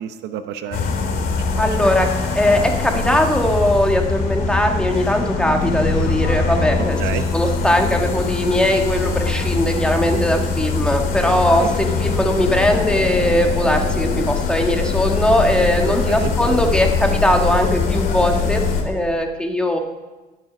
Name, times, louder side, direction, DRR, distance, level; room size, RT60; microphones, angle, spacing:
voice 1, 0.0-1.9 7.0-7.3 16.1-16.3, right 10 dB, 85° right, 9 dB, 0.8 m, -31 dB
sound 1, 0.7-18.8, left 4 dB, 65° left, 2.4 m, -22 dB
voice 2, 1.6-2.1 2.3-7.0 7.3-19.8, equal, 5° left, 3 dB, 1.6 m, -19 dB
19.5 x 6.8 x 6.0 m, 1.2 s
cardioid pair, 110°, 17 cm